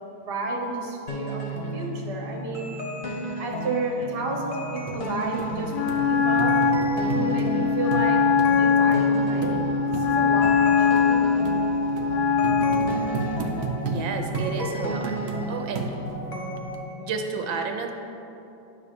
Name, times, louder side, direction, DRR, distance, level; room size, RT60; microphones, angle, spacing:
voice 1, 0.3-1.5 1.7-2.7 3.2-6.6 7.1-8.2 8.5-11.2, right 2 dB, 40° right, 0 dB, 1.0 m, -31 dB
sound 1, 1.1-16.8, right 1 dB, 40° left, 1.0 m, -33 dB
sound 2, 4.9-5.0 5.4-5.5 5.9-6.0 6.4-7.5 7.9-8.1 8.4-8.5 8.9-9.0 9.4-9.6 9.9-10.1 10.4-10.6 11.0-11.1 11.4-11.6 12.0-12.1 12.4-14.0 14.3-14.5 15.0-15.4 15.8-16.2 16.7-16.8, right 5 dB, 65° right, 0.8 m, -32 dB
Wind instrument woodwind instrument, 5.7-12.9, left 6 dB, 75° left, 1.1 m, -22 dB
voice 2, 13.9-15.2 15.5-15.9 17.0-17.9, right 5 dB, 80° right, 4 dB, 1.4 m, -31 dB
10.0 x 3.4 x 6.7 m, 2.9 s
omnidirectional pair, 2.1 m